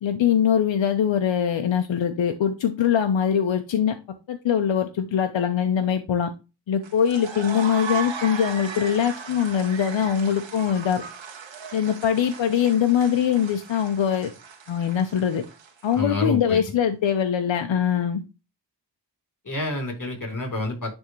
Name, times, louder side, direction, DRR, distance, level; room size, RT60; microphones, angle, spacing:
voice 1, 0.0-3.9 4.3-6.3 6.7-11.0 11.7-14.3 14.7-15.4 15.8-18.2, left 8 dB, 90° left, 0.8 m, -22 dB
sound 1, 6.8-16.2, right 6 dB, 85° right, 1.4 m, -37 dB
voice 2, 15.9-16.6 19.4-20.9, left 2 dB, 45° left, 3.5 m, -28 dB
10.5 x 3.6 x 3.1 m
cardioid pair, 45°, 44 cm